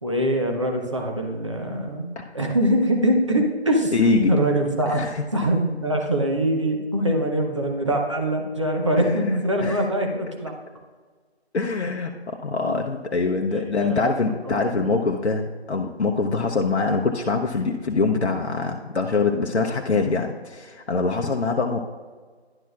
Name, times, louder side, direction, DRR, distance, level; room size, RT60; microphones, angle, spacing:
voice 1, 0.0-3.9 4.3-5.0 5.3-10.5 12.7-12.8 13.5-14.1 14.4-15.1, right 1 dB, 30° right, 2 dB, 0.7 m, -23 dB
voice 2, 3.9-4.3 4.9-5.2 9.0-9.3 9.6-9.8 11.5-21.8, left 4 dB, 80° left, 2 dB, 0.8 m, -24 dB
11.0 x 6.0 x 2.3 m, 1.5 s
figure-of-eight pair, 165°, 33 cm